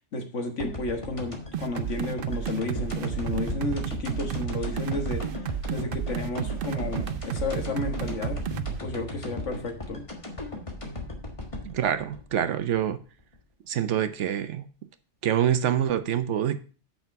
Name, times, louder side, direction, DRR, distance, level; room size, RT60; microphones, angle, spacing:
voice 1, 0.1-5.3 5.7-8.4 8.8-10.0, left 3 dB, 85° left, 1.7 m, -32 dB
sound 1, 0.6-13.4, left 2 dB, 25° left, 1.5 m, -37 dB
sound 2, 1.5-8.8, right 10 dB, 60° right, 0.7 m, -32 dB
voice 2, 11.6-13.0 13.7-14.7 15.2-16.6, right 10 dB, 80° right, 1.1 m, -26 dB
8.2 x 6.0 x 4.5 m
omnidirectional pair, 1.2 m